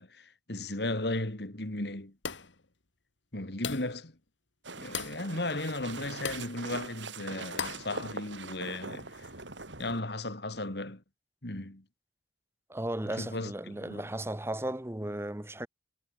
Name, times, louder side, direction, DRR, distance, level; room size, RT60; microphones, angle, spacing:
voice 1, 0.0-2.1 3.3-4.2 4.8-9.3 9.8-11.0 11.4-11.8 13.2-14.0, left 2 dB, 60° left, 2.6 m, -36 dB
sound 1, 2.2-2.6 3.6-4.0 4.9-5.2 6.2-6.5 7.6-7.9, left 6 dB, 85° left, 2.2 m, -37 dB
sound 2, 4.6-10.0, right 4 dB, 85° right, 6.2 m, -42 dB
voice 2, 12.7-15.7, right 1 dB, 15° right, 1.1 m, -35 dB
head